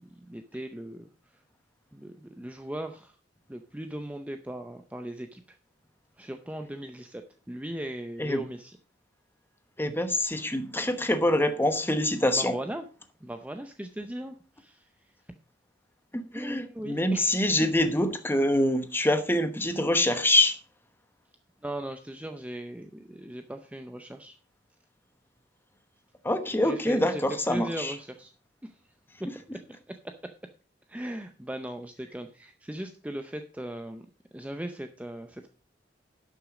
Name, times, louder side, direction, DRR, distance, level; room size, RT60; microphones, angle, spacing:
voice 1, 0.3-1.4 1.9-3.2 3.5-5.6 6.2-8.8 12.3-12.9 13.2-14.9 16.3-17.5 21.6-24.4 26.6-28.3 28.6-28.7 29.2-29.6 29.9-30.2 30.9-34.1 34.3-35.5, right 1 dB, 10° right, 0.5 m, -38 dB
voice 2, 9.8-12.5 16.1-20.6 26.2-27.9, left 1 dB, 10° left, 1.0 m, -25 dB
11.0 x 6.3 x 5.0 m
head